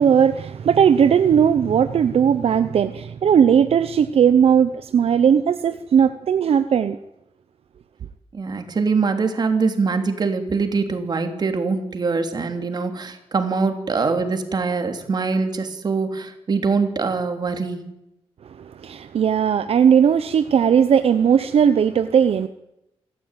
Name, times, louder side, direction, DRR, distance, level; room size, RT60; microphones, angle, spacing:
voice 1, 0.0-7.0 18.8-22.5, right 8 dB, 70° right, 0.9 m, -17 dB
voice 2, 8.3-17.8, right 4 dB, 40° right, 3.2 m, -23 dB
27.5 x 14.5 x 9.2 m
wide cardioid pair, 150°, 10 cm